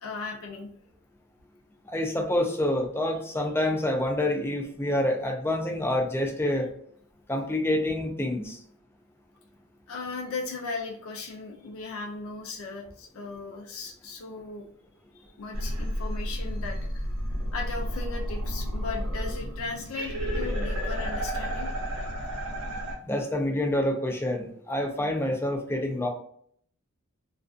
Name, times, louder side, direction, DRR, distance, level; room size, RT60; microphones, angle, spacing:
voice 1, 0.0-0.7 9.9-14.7 15.2-21.7, left 3 dB, 80° left, 0 dB, 0.5 m, -37 dB
voice 2, 1.9-6.7 7.3-8.6 23.0-26.1, left 1 dB, 10° left, 3 dB, 0.4 m, -27 dB
sound 1, 15.5-22.9, equal, 80° right, 0.8 m, -31 dB
2.4 x 2.4 x 2.4 m, 0.63 s
head